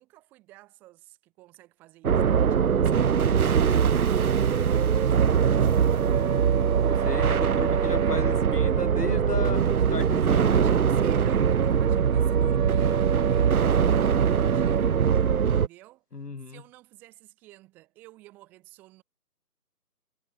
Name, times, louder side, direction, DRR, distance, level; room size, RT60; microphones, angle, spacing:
voice 1, 0.0-6.9 10.2-15.0 15.3-16.0 16.5-19.0, right 18 dB, 5° right, 3.6 m, -53 dB
sound 1, 2.0-15.7, right 7 dB, 60° right, 0.5 m, -22 dB
voice 2, 6.8-10.8 16.1-16.6, left 4 dB, 70° left, 2.2 m, -35 dB
figure-of-eight pair, 180°, 49 cm